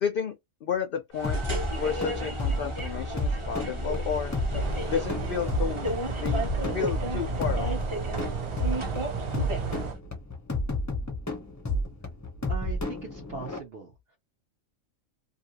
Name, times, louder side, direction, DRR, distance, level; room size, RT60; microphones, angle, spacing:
voice 1, 0.0-1.4 1.8-4.3 4.9-5.9 6.2-6.5 6.7-7.8, left 7 dB, 65° left, 0.6 m, -31 dB
sound 1, 1.1-10.0, equal, 25° right, 0.9 m, -33 dB
sound 2, 1.2-13.6, left 1 dB, 20° left, 0.5 m, -32 dB
sound 3, 4.5-9.9, right 7 dB, 85° right, 0.3 m, -35 dB
voice 2, 12.5-14.2, right 5 dB, 55° right, 0.8 m, -40 dB
2.7 x 2.6 x 2.7 m
omnidirectional pair, 1.4 m